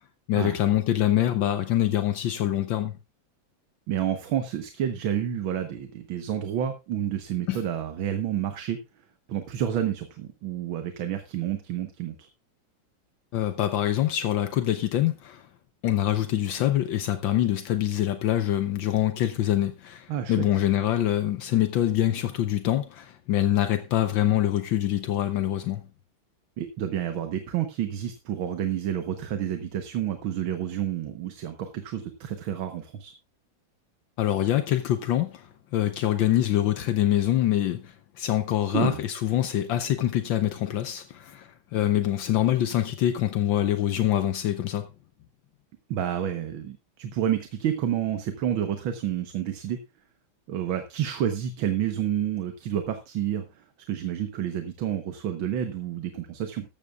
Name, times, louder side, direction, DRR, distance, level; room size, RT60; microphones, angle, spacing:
voice 1, 0.3-3.0 7.5-7.6 13.3-15.4 15.8-25.8 34.2-44.9, left 12 dB, 75° left, 1.5 m, -25 dB
voice 2, 3.9-8.8 9.3-12.2 20.1-20.5 26.6-33.1 38.7-39.0 45.9-49.8 50.5-53.5 53.9-56.7, right 10 dB, 85° right, 1.9 m, -29 dB
14.0 x 13.5 x 2.4 m
omnidirectional pair, 2.1 m